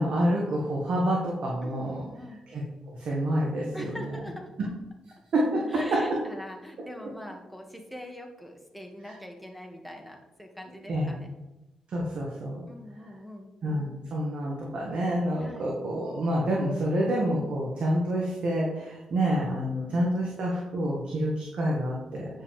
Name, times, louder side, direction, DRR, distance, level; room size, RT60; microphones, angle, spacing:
voice 1, 0.0-2.0 2.5-4.1 4.6-4.7 5.3-6.2 9.1-9.2 10.9-11.2 11.9-12.6 13.6-22.4, right 1 dB, 65° right, -3 dB, 1.7 m, -28 dB
voice 2, 1.6-2.4 3.7-4.5 5.7-11.3 12.7-13.5 15.4-15.8 19.9-20.0, left 1 dB, ahead, 2 dB, 2.0 m, -43 dB
9.5 x 5.8 x 3.5 m, 1.0 s
supercardioid pair, 50°, 2 cm